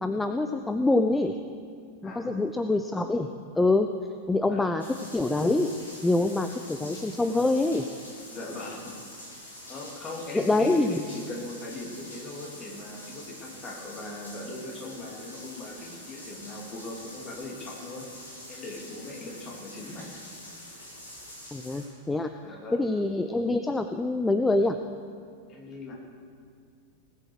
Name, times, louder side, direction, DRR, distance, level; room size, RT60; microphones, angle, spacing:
voice 1, 0.0-1.4 2.0-3.3 3.6-3.9 4.3-4.8 5.1-5.7 6.0-7.8 10.3-11.0 21.5-22.3 22.7-24.8, left 2 dB, 10° left, 7 dB, 0.6 m, -25 dB
voice 2, 2.0-2.5 4.5-4.7 8.3-9.0 9.7-18.1 18.5-20.1 22.4-22.8 25.5-26.0, left 2 dB, 30° left, -1 dB, 3.2 m, -40 dB
sound 1, 4.8-21.9, left 1 dB, 70° left, 4.2 m, -45 dB
19.5 x 7.7 x 6.4 m, 2.1 s
figure-of-eight pair, 90°, 0 cm